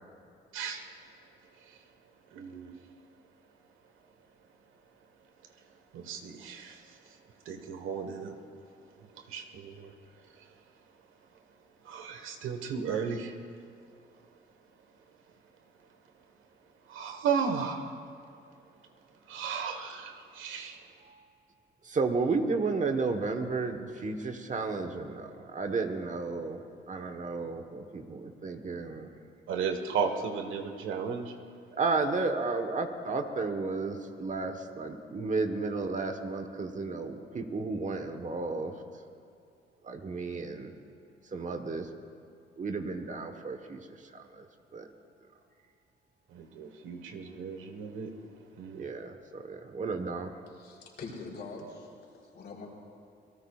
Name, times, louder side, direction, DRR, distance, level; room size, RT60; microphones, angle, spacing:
voice 1, 0.5-0.9 1.2-1.9 2.3-2.9 5.0-5.1 5.4-8.4 8.9-10.9 11.8-13.4 14.0-14.4 14.9-15.4 15.8-15.9 16.6-18.0 19.1-20.9 29.5-31.3 46.3-48.9, right 6 dB, 85° right, 5 dB, 1.4 m, -36 dB
voice 2, 21.8-29.1 31.7-38.8 39.8-40.7 41.3-41.9 42.6-44.9 48.7-50.3, right 3 dB, 40° right, 6 dB, 1.2 m, -33 dB
voice 3, 50.5-51.9 52.3-52.7, left 3 dB, 60° left, -2 dB, 4.2 m, -43 dB
27.0 x 18.0 x 2.4 m, 2.5 s
cardioid pair, 90°, 20 cm